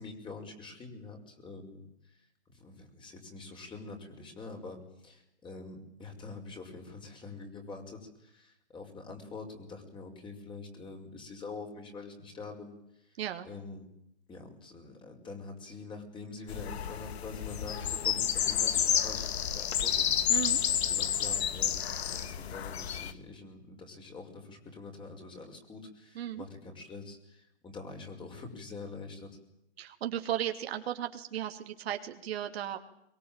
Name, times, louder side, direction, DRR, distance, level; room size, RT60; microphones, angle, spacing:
voice 1, 0.0-13.9 14.3-20.0 20.7-29.3, left 3 dB, 15° left, 4 dB, 5.6 m, -45 dB
sound 1, 16.5-23.1, left 9 dB, 65° left, 2.2 m, -30 dB
voice 2, 20.3-20.6 26.1-26.4 29.8-32.8, right 11 dB, 60° right, 6 dB, 2.9 m, -35 dB
23.0 x 23.0 x 9.0 m, 0.78 s
hypercardioid pair, 140°, 34 cm